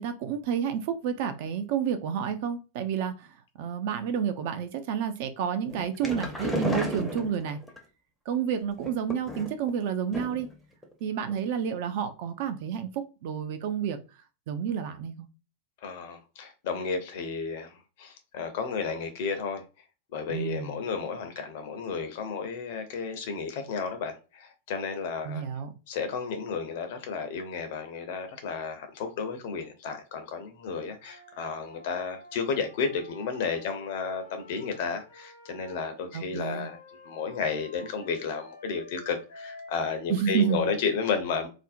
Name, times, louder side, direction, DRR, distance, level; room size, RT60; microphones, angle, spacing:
voice 1, 0.0-7.6 8.3-10.5 11.0-14.0 14.5-15.3 20.3-20.8 25.2-25.7 36.1-36.7 40.1-40.7, right 8 dB, 50° right, 0.4 m, -30 dB
sound 1, 5.7-7.8 8.8-9.7 10.1-10.5 10.8-10.9 11.3-11.4, left 1 dB, 5° left, 0.5 m, -33 dB
voice 2, 15.8-19.6 20.1-25.4 25.9-36.8 37.0-41.5, left 5 dB, 50° left, 0.5 m, -32 dB
Wind instrument woodwind instrument, 31.0-35.9 36.5-39.7, left 2 dB, 80° left, 0.9 m, -50 dB
2.5 x 2.0 x 2.5 m
figure-of-eight pair, 90°, 0 cm